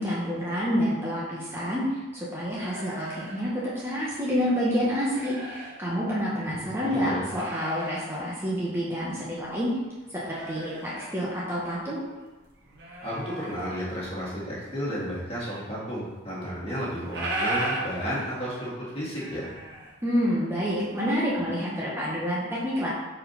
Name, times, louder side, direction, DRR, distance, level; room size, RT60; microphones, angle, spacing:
voice 1, 0.0-9.7 10.1-12.0 20.0-22.9, equal, 15° right, -7 dB, 1.1 m, -28 dB
sound 1, 2.4-4.3 4.7-5.8 6.3-6.4 7.0-8.1 8.4-8.5 8.9-11.9 12.2-14.2 14.6-15.7 16.0-16.1 16.3-16.4 16.7-20.5 20.9-21.4, right 1 dB, 60° right, 1.4 m, -37 dB
voice 2, 6.4-7.3 13.0-19.5, equal, 30° left, -7 dB, 2.1 m, -32 dB
4.9 x 4.4 x 5.6 m, 1.2 s
head